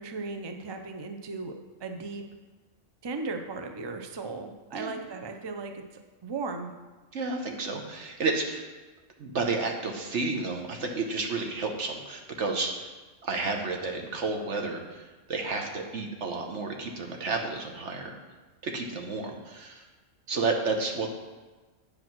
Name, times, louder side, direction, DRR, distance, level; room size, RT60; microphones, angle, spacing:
voice 1, 0.0-1.5 1.8-2.2 3.0-5.8 6.2-6.7, right 3 dB, 35° right, 5 dB, 0.4 m, -36 dB
voice 2, 7.1-8.7 9.2-12.9 13.2-18.2 18.6-19.8 20.3-21.1, right 3 dB, 65° right, 2 dB, 1.4 m, -31 dB
9.0 x 5.0 x 6.0 m, 1.2 s
omnidirectional pair, 1.3 m